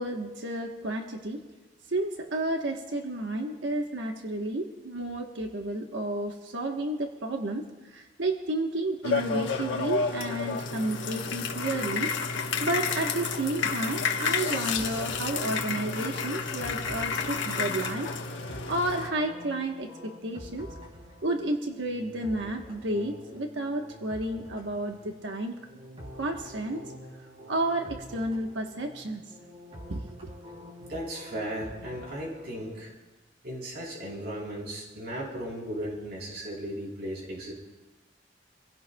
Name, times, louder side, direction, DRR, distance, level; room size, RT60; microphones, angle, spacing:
voice 1, 0.0-1.4 1.9-12.1 12.6-18.1 18.4-19.9 20.2-20.7 21.2-25.5 26.2-26.8 27.5-29.2 29.9-30.2, right 1 dB, 85° right, 2 dB, 1.2 m, -31 dB
sound 1, 9.0-19.1, left 5 dB, 90° left, 1.2 m, -31 dB
sound 2, 13.2-32.8, equal, 35° right, 3.1 m, -47 dB
voice 2, 30.8-32.9 33.4-37.5, equal, 60° right, -2 dB, 3.7 m, -36 dB
25.5 x 16.5 x 2.3 m, 1.2 s
head